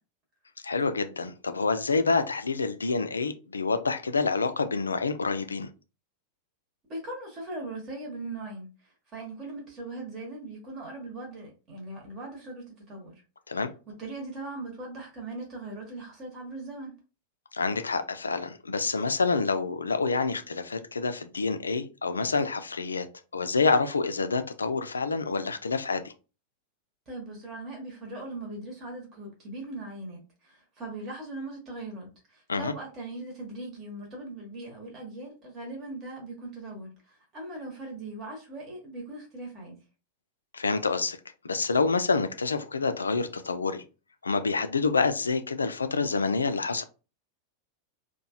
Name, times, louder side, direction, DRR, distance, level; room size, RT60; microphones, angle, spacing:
voice 1, 0.6-5.7 13.5-13.7 17.5-23.1 23.3-26.1 32.5-32.7 40.5-41.2 41.4-43.8 44.2-46.8, left 4 dB, 75° left, 0.3 m, -27 dB
voice 2, 6.9-13.1 13.9-16.9 27.1-39.8, right 2 dB, 30° right, 1.0 m, -40 dB
2.8 x 2.2 x 2.4 m
figure-of-eight pair, 90°, 0 cm